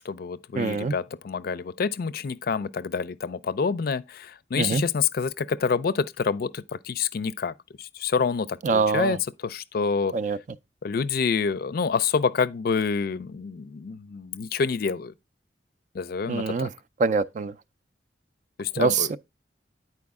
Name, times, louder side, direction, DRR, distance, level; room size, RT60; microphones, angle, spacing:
voice 1, 0.0-9.2 9.4-10.2 10.8-15.1 15.9-16.7 18.6-19.1, left 5 dB, 60° left, 0.4 m, -27 dB
voice 2, 0.6-0.9 4.6-4.8 8.6-9.2 10.1-10.4 16.3-16.7 17.0-17.5 18.8-19.2, right 4 dB, 45° right, 0.4 m, -24 dB
9.6 x 4.6 x 3.5 m
head